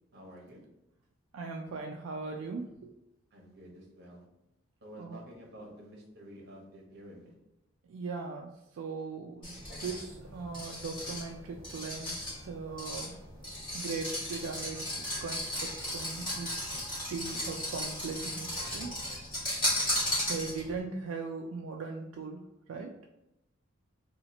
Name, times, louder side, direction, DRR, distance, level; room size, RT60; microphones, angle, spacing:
voice 1, 0.1-0.6 3.3-4.2 4.8-7.3, equal, 55° right, -2 dB, 1.0 m, -50 dB
voice 2, 1.3-2.9 5.0-5.2 7.9-13.1 13.7-16.6 16.8-19.0 20.3-22.4 22.7-22.9, right 4 dB, 85° right, 2 dB, 0.3 m, -39 dB
sound 1, 9.4-20.8, left 1 dB, 25° left, 1.4 m, -36 dB
2.9 x 2.4 x 3.9 m, 0.88 s
head